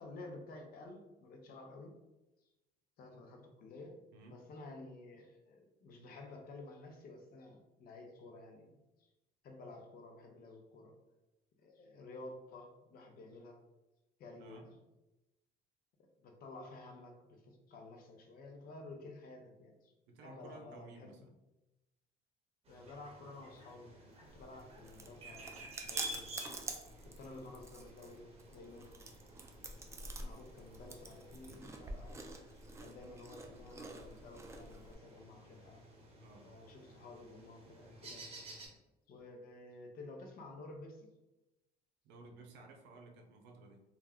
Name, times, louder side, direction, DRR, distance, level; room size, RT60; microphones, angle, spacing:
voice 1, 0.0-2.0 3.0-4.0 4.3-9.1 9.4-11.0 11.6-13.6 14.2-14.8 16.0-19.9 20.2-21.3 22.7-26.6 27.0-29.2 29.6-32.2 32.8-35.8 36.4-38.3 39.1-41.1, left 2 dB, 60° left, 3 dB, 0.6 m, -52 dB
voice 2, 4.1-4.4 14.4-14.7 20.1-21.3 36.2-36.5 42.0-43.8, right 3 dB, 90° right, 3 dB, 0.5 m, -55 dB
sound 1, 22.7-38.7, right 1 dB, 35° right, 0.8 m, -53 dB
Chewing mastication, 24.3-34.9, right 2 dB, 15° right, 0.3 m, -48 dB
2.3 x 2.2 x 3.4 m, 1.0 s
cardioid pair, 110°, 17 cm